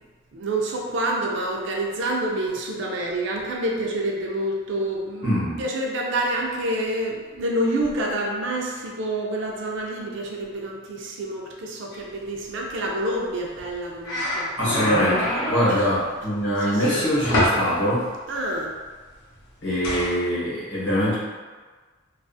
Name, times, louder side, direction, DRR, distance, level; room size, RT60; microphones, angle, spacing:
voice 1, 0.3-5.3 5.6-14.5 15.7-15.9 16.7-17.0 18.3-18.8, right 1 dB, 55° right, -1 dB, 0.4 m, -27 dB
voice 2, 5.2-5.6 14.6-18.1 19.6-21.2, equal, 55° left, -8 dB, 0.9 m, -23 dB
sound 1, 13.6-13.7 14.0-15.7 16.8-17.6 19.8-20.1, left 1 dB, 85° left, 0.7 m, -25 dB
2.4 x 2.3 x 2.5 m, 1.4 s
head